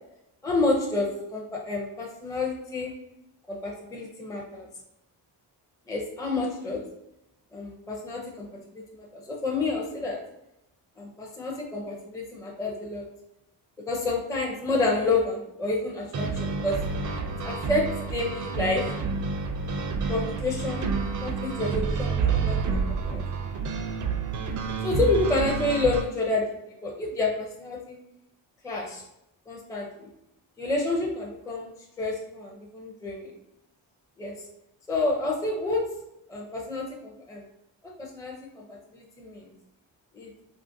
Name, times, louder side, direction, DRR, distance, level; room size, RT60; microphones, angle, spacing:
voice 1, 0.4-2.9 3.5-4.7 5.9-6.8 7.5-8.5 8.9-10.2 11.0-13.0 13.9-16.8 17.4-17.8 18.1-18.8 20.1-20.9 21.2-23.2 24.8-26.4 26.8-28.0 28.6-29.0 29.5-30.1 30.6-31.7 32.0-33.3 34.2-34.3 34.9-35.8 36.3-37.4 38.0-39.5 40.1-40.3, left 2 dB, 10° left, -1 dB, 0.5 m, -29 dB
sound 1, 16.1-26.0, right 5 dB, 45° right, 0.4 m, -29 dB
2.9 x 2.5 x 2.6 m, 0.85 s
cardioid pair, 70°, 44 cm